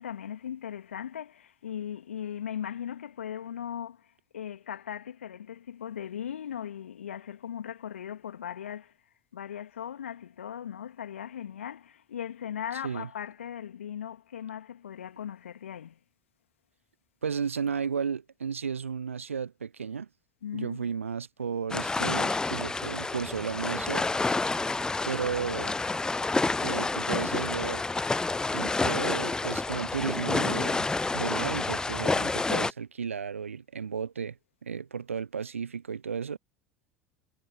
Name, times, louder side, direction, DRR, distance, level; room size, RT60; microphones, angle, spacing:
voice 1, 0.0-8.9 9.3-16.0 20.4-20.8, left 9 dB, 75° left, 2.5 m, -38 dB
voice 2, 17.2-20.1 20.5-24.1 25.0-25.8 26.6-27.8 28.5-34.4 34.6-36.4, right 6 dB, 80° right, 0.6 m, -33 dB
sound 1, 21.7-32.7, left 3 dB, 10° left, 0.4 m, -29 dB
figure-of-eight pair, 70°, 7 cm